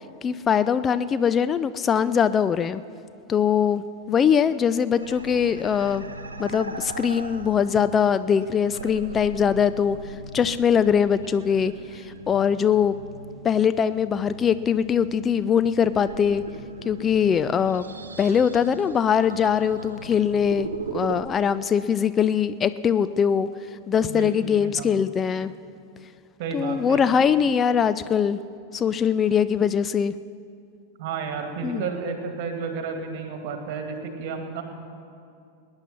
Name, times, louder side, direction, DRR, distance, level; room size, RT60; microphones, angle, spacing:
voice 1, 0.2-2.8 3.3-6.0 6.4-10.0 10.3-13.0 13.4-16.4 16.9-25.5 26.5-28.4 28.7-30.1 31.6-31.8, left 7 dB, 25° left, 13 dB, 0.4 m, -22 dB
sound 1, 5.0-21.2, right 3 dB, 75° right, 0.8 m, -39 dB
voice 2, 24.0-24.9 26.4-27.1 31.0-34.6, right 5 dB, 45° right, 5 dB, 2.1 m, -32 dB
20.0 x 9.7 x 5.9 m, 2.5 s
figure-of-eight pair, 90°, 0 cm